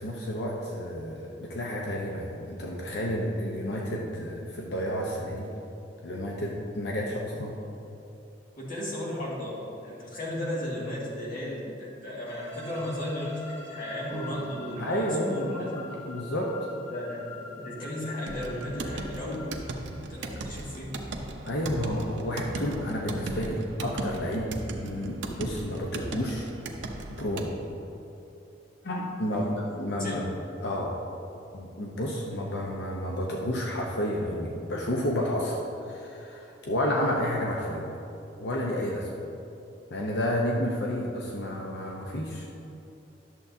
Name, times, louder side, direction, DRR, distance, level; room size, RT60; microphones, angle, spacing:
voice 1, 0.0-5.5 6.0-7.5 14.8-16.5 21.5-24.5 24.8-26.5 27.2-27.5 28.8-30.3 30.6-31.0 31.5-37.8 38.4-39.1 39.9-42.5, equal, 65° left, -2 dB, 0.8 m, -31 dB
voice 2, 8.5-15.7 16.9-19.4 20.1-21.0 29.3-29.6 30.0-30.1, left 1 dB, 50° left, -5 dB, 1.9 m, -35 dB
sound 1, 12.2-20.0, left 1 dB, 5° left, 1.7 m, -44 dB
sound 2, 14.1-18.3, right 5 dB, 30° right, 1.5 m, -46 dB
sound 3, 18.3-27.5, right 2 dB, 80° right, 0.7 m, -37 dB
11.0 x 7.1 x 2.7 m, 2.8 s
head